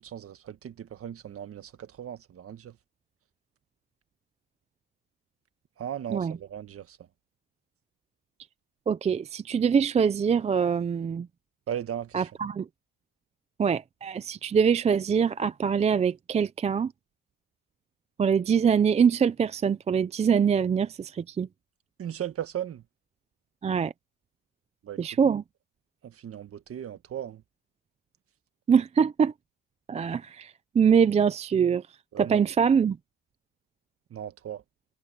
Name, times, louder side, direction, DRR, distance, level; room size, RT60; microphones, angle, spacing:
voice 1, 0.0-2.7 5.8-7.0 11.7-12.3 22.0-22.8 24.8-25.0 26.0-27.4 32.1-32.4 34.1-34.6, right 10 dB, 35° right, 1.6 m, -37 dB
voice 2, 8.9-11.3 12.1-12.7 13.6-16.9 18.2-21.5 23.6-23.9 25.0-25.4 28.7-29.3 29.9-31.8 32.2-33.0, right 7 dB, 20° right, 0.4 m, -24 dB
cardioid pair, 140°, 38 cm